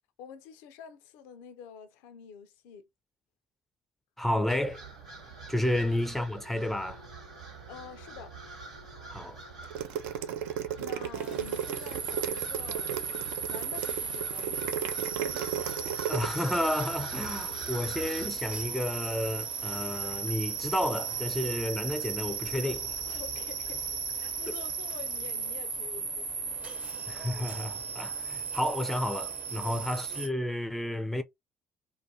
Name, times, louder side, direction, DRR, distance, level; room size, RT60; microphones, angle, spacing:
voice 1, 0.2-2.9 5.8-5.9 7.7-8.4 10.8-13.1 13.5-14.8 15.2-15.4 23.1-26.9 29.6-30.1, left 7 dB, 70° left, 0.4 m, -48 dB
voice 2, 4.2-4.8 5.5-7.1 9.1-9.4 16.1-23.0 24.5-24.6 27.1-31.2, left 1 dB, 5° left, 0.4 m, -31 dB
sound 1, 4.5-18.3, right 4 dB, 90° right, 1.0 m, -46 dB
sound 2, 9.6-16.3, right 9 dB, 70° right, 0.3 m, -34 dB
sound 3, 11.2-30.3, right 5 dB, 40° right, 0.7 m, -36 dB
2.4 x 2.2 x 2.7 m
hypercardioid pair, 55°, 3 cm